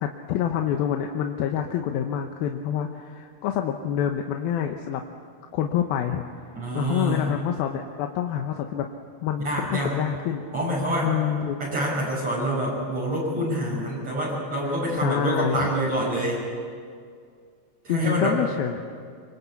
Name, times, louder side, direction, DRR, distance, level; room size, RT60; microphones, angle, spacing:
voice 1, 0.0-5.0 5.5-6.2 6.7-8.8 9.2-10.4 11.0-11.6 14.6-15.7 17.9-18.8, left 10 dB, 85° left, 4 dB, 2.9 m, -27 dB
voice 2, 6.6-7.3 9.4-10.0 10.5-11.1 11.6-16.4 17.8-18.4, right 1 dB, 45° right, -5 dB, 7.3 m, -26 dB
25.0 x 24.5 x 8.4 m, 2.2 s
omnidirectional pair, 4.2 m